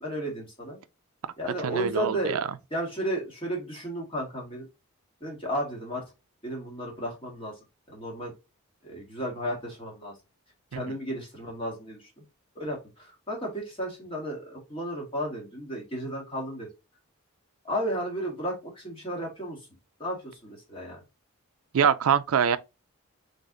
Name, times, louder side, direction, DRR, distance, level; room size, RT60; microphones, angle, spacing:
voice 1, 0.0-0.8 1.4-2.4 2.7-4.7 5.2-6.0 6.4-7.5 7.9-8.3 8.8-10.1 10.7-12.0 12.5-16.7 17.6-19.6 20.0-21.0, equal, 25° left, 1.7 m, -33 dB
voice 2, 1.6-2.5 10.7-10.8 21.7-22.6, right 7 dB, 75° right, 0.4 m, -24 dB
3.9 x 3.4 x 3.7 m
head